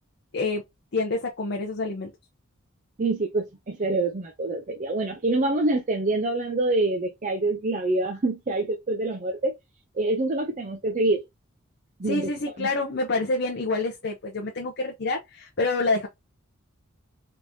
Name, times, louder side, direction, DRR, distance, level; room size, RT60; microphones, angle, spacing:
voice 1, 0.9-2.1 12.0-16.1, left 3 dB, 55° left, 0.7 m, -27 dB
voice 2, 3.0-9.5 10.0-11.2 12.0-12.3 12.6-12.7, right 2 dB, 35° right, 0.5 m, -26 dB
3.4 x 3.1 x 2.7 m
head